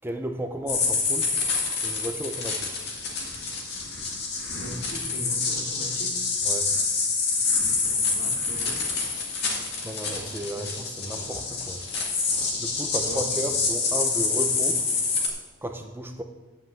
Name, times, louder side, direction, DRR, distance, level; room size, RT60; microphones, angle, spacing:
voice 1, 0.0-1.3 1.8-2.7 6.4-6.7 9.8-11.8 12.6-14.8 15.6-16.2, right 1 dB, 10° right, 5 dB, 0.6 m, -33 dB
sound 1, 0.7-15.3, left 4 dB, 55° left, 2.0 m, -27 dB
voice 2, 4.5-6.2 7.8-8.8 10.4-10.8 13.1-13.2, equal, 70° left, -2 dB, 2.8 m, -39 dB
9.7 x 5.7 x 7.6 m, 1.3 s
head